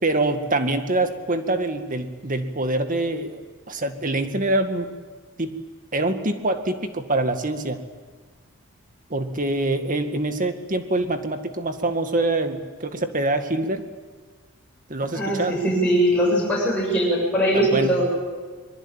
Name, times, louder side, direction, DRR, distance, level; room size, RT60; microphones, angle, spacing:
voice 1, 0.0-3.4 3.7-4.9 5.4-5.5 5.9-7.8 9.1-13.8 14.9-15.6 17.5-18.0, right 2 dB, 40° right, 7 dB, 2.1 m, -25 dB
voice 2, 15.1-18.1, right 1 dB, 5° left, -6 dB, 7.4 m, -21 dB
24.0 x 22.5 x 9.1 m, 1.4 s
head